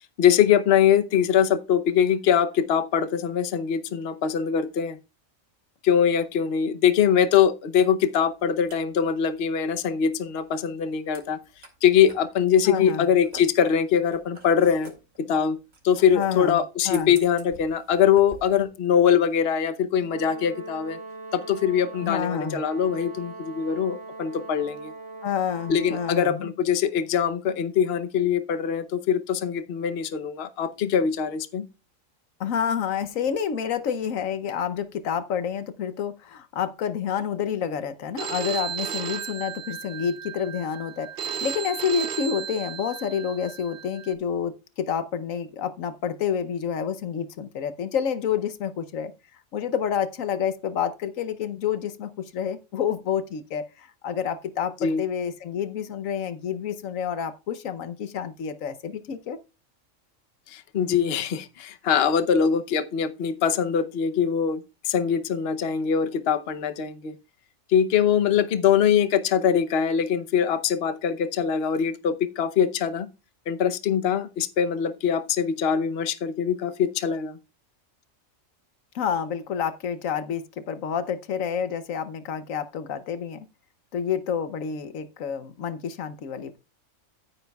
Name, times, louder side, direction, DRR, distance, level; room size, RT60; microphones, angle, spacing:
voice 1, 0.2-5.0 5.8-11.4 11.8-14.9 15.2-15.6 15.8-21.0 21.3-24.9 25.7-31.7 54.8-55.0 60.5-64.6 64.8-67.1 67.7-73.1 73.5-77.4, left 8 dB, 55° left, 1.0 m, -22 dB
sound 1, 8.2-18.6, right 2 dB, 90° right, 3.0 m, -49 dB
voice 2, 12.6-13.0 16.1-16.6 16.9-17.1 22.0-22.6 25.2-26.5 32.4-49.1 49.5-59.4 78.9-83.5 83.9-86.6, left 8 dB, 75° left, 1.2 m, -29 dB
Brass instrument, 20.0-26.4, right 3 dB, 75° right, 3.5 m, -40 dB
Telephone, 38.2-44.1, right 8 dB, 50° right, 0.9 m, -34 dB
14.5 x 9.4 x 2.3 m
omnidirectional pair, 1.4 m